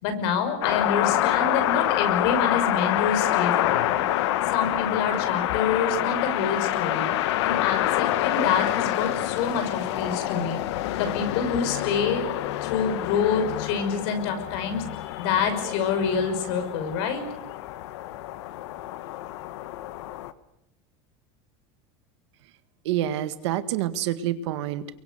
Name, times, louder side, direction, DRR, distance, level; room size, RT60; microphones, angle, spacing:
voice 1, 0.0-4.2 4.5-7.1 7.4-10.6 10.9-12.3 12.6-17.2, left 6 dB, 70° left, 8 dB, 6.0 m, -27 dB
sound 1, 0.6-20.3, left 14 dB, 85° left, 1.4 m, -27 dB
voice 2, 22.9-25.0, right 12 dB, 85° right, 11 dB, 1.8 m, -27 dB
29.5 x 23.5 x 7.0 m, 0.80 s
cardioid pair, 165°, 14 cm